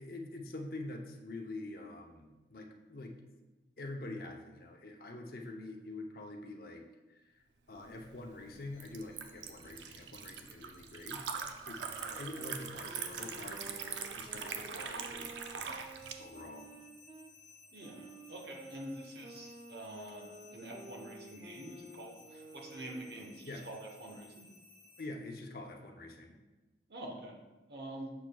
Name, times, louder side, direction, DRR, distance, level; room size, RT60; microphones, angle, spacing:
voice 1, 0.0-3.1 3.8-7.3 7.7-15.3 15.6-15.8 16.2-16.7 23.4-23.6 25.0-26.4, left 2 dB, 55° left, 2 dB, 0.7 m, -46 dB
Liquid, 7.8-16.1, right 6 dB, 85° right, 0.5 m, -42 dB
sound 1, 8.6-25.1, left 3 dB, 15° left, 1.4 m, -60 dB
sound 2, 12.1-17.3 17.8-23.4, right 1 dB, 25° right, 0.3 m, -52 dB
voice 2, 17.7-24.5 26.9-27.3 27.7-28.1, right 1 dB, 65° right, 1 dB, 1.0 m, -46 dB
7.1 x 6.1 x 2.3 m, 1.1 s
head